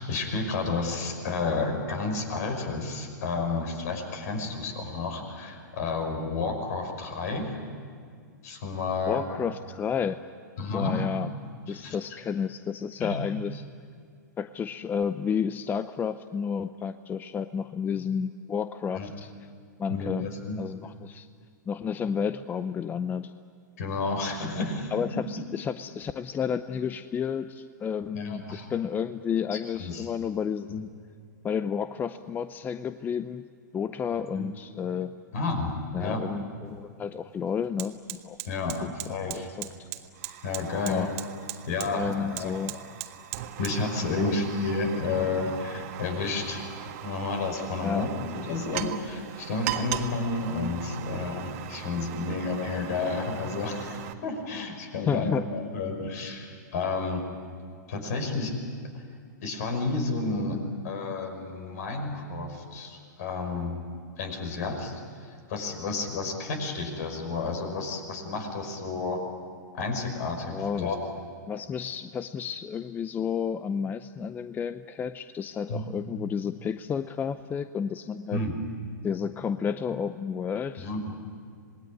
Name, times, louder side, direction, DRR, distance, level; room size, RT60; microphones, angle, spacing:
voice 1, 0.0-7.6 8.4-9.2 10.6-11.1 11.7-12.0 13.0-13.2 18.9-19.1 19.9-20.6 23.8-25.0 28.1-28.7 29.5-30.0 34.1-34.5 35.3-35.7 36.0-36.2 38.5-39.5 40.4-41.1 41.6-42.8 43.6-57.2 57.9-58.5 59.4-60.6 60.8-63.8 64.2-65.0 65.3-69.2 69.7-71.0 75.7-75.8 78.3-78.6 80.8-81.0, left 3 dB, 60° left, 5 dB, 5.6 m, -31 dB
voice 2, 9.1-10.2 10.7-11.3 11.7-13.6 14.4-19.3 19.8-21.3 21.7-23.3 24.6-24.7 24.9-30.9 31.4-33.5 33.7-35.1 35.9-38.4 38.8-38.9 39.3-39.9 40.9-41.1 41.9-42.8 44.2-44.3 47.8-48.1 55.0-55.5 70.5-70.9 71.5-78.4 79.0-80.9, left 7 dB, 20° left, 12 dB, 0.6 m, -31 dB
Fire, 36.7-36.8 37.1-54.1, right 13 dB, 50° right, 1.6 m, -39 dB
26.5 x 20.0 x 9.8 m, 2.2 s
hypercardioid pair, 110°, 10 cm